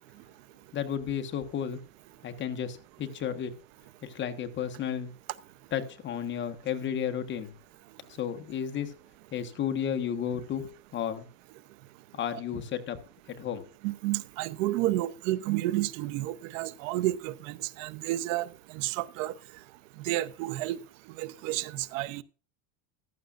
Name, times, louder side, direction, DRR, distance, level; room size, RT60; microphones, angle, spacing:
voice 1, 0.7-1.8 2.2-3.5 4.0-5.1 5.7-7.5 8.1-8.9 9.3-11.3 12.1-13.0 13.3-13.7, left 8 dB, 30° left, 1.2 m, -33 dB
voice 2, 13.8-18.5 18.7-19.3 20.0-20.8 21.2-22.2, right 16 dB, 70° right, 0.8 m, -31 dB
14.5 x 12.5 x 2.5 m
supercardioid pair, 150°, 40 cm